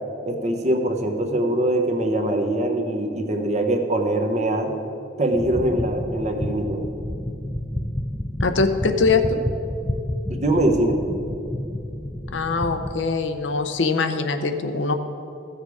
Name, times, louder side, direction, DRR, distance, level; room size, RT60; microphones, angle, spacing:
voice 1, 0.2-4.7 5.2-6.8 10.3-11.0, right 1 dB, 35° right, 4 dB, 0.9 m, -22 dB
sound 1, 5.3-12.9, left 1 dB, 10° left, 0.3 m, -30 dB
voice 2, 8.4-9.4 12.3-14.9, left 4 dB, 75° left, 8 dB, 0.7 m, -22 dB
14.5 x 6.6 x 4.8 m, 2.8 s
head